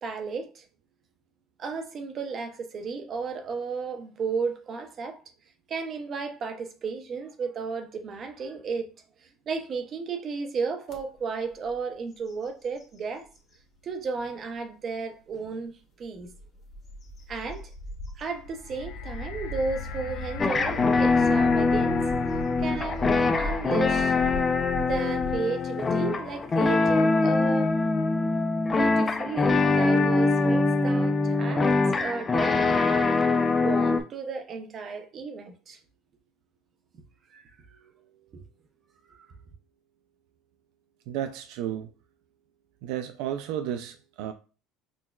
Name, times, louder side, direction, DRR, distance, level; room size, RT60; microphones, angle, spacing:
voice 1, 0.0-0.7 1.6-5.2 5.7-8.9 9.2-13.3 13.8-15.7 16.0-16.3 17.3-17.7 18.2-22.0 22.6-24.1 24.8-27.7 28.7-33.2 33.6-35.8 37.3-37.4 38.3-38.4 39.1-39.3, right 4 dB, 35° right, 0.7 m, -34 dB
sound 1, 10.9-11.0 11.5-11.8 12.1-13.6 14.2-14.3 16.0-25.4, equal, 35° left, 1.3 m, -39 dB
sound 2, 18.3-28.5 29.3-29.4, left 5 dB, 75° left, 0.5 m, -41 dB
sound 3, 20.4-34.0, left 3 dB, 20° left, 0.4 m, -23 dB
voice 2, 41.1-41.9 42.8-44.3, right 10 dB, 75° right, 0.3 m, -32 dB
6.1 x 2.2 x 2.3 m
cardioid pair, 135°, 0 cm